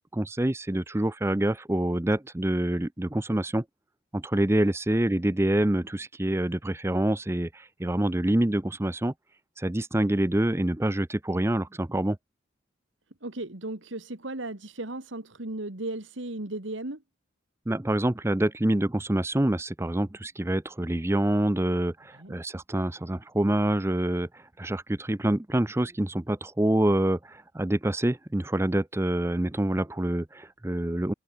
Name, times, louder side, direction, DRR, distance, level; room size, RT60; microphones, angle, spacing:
voice 1, 0.1-3.6 4.1-9.1 9.6-12.2 17.7-31.1, right 1 dB, 15° right, 0.5 m, -26 dB
voice 2, 13.2-17.0 22.1-22.4, right 2 dB, 70° right, 2.1 m, -36 dB
head